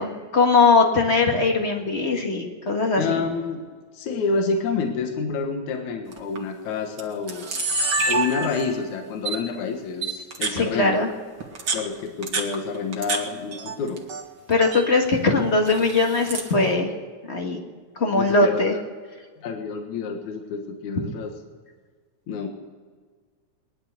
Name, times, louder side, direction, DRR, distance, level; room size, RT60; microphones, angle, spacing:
voice 1, 0.0-3.2 10.5-11.1 14.5-16.9 17.3-17.6 17.9-18.7, left 3 dB, 30° left, 2 dB, 1.4 m, -20 dB
voice 2, 3.0-3.6 3.9-7.5 8.1-11.0 11.7-14.0 18.1-18.6 19.4-21.3 22.3-22.5, left 5 dB, 75° left, 4 dB, 2.8 m, -28 dB
Camera, 6.1-6.4 7.0-7.1 7.3-8.8 9.3-9.4 10.0-10.6 11.4-13.2 13.5-14.2 14.5-14.9 15.7-16.5, right 4 dB, 40° right, 1.9 m, -27 dB
19.5 x 11.0 x 6.6 m, 1.5 s
omnidirectional pair, 3.4 m